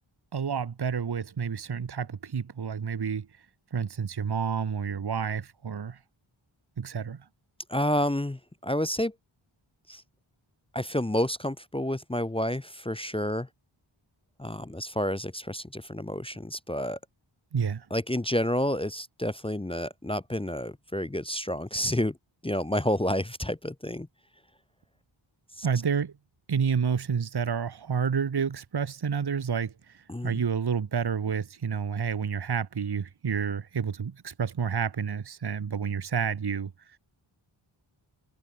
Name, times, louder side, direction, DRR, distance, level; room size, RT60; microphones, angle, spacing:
voice 1, 0.3-3.3 3.7-6.0 6.8-7.2 17.5-17.9 25.6-26.1 26.5-36.7, right 6 dB, 50° right, 1.2 m, -29 dB
voice 2, 7.7-9.1 9.9-10.0 10.7-13.5 14.4-17.0 17.9-22.2 22.4-24.1 25.6-25.7 30.1-30.4, left 1 dB, 10° left, 0.6 m, -29 dB
wide cardioid pair, 90°, 49 cm